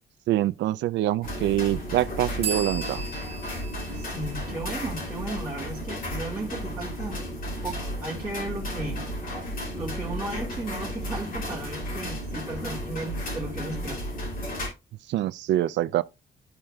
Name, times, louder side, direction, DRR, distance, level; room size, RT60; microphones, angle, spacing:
voice 1, 0.3-3.0 15.1-16.0, right 13 dB, 90° right, 0.4 m, -25 dB
sound 1, 1.2-14.7, equal, 50° left, 3.2 m, -33 dB
sound 2, 2.4-6.0, right 4 dB, 35° right, 1.9 m, -37 dB
voice 2, 3.9-7.2 7.6-9.0 9.7-14.0, right 2 dB, 15° right, 2.1 m, -35 dB
13.0 x 4.4 x 2.3 m
cardioid pair, 145°, 18 cm